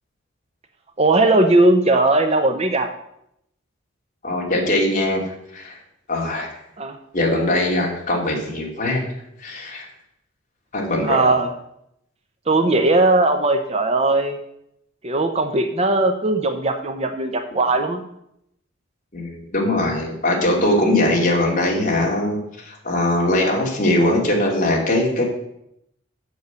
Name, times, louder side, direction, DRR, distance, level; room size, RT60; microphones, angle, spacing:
voice 1, 1.0-2.9 6.8-7.0 11.1-11.5 12.5-14.4 15.0-18.0, right 2 dB, 30° right, 6 dB, 0.8 m, -18 dB
voice 2, 4.2-5.8 6.1-6.6 7.1-9.0 9.4-9.9 10.7-11.3 19.1-25.2, left 1 dB, 40° left, -2 dB, 2.9 m, -21 dB
8.2 x 6.7 x 8.0 m, 0.78 s
head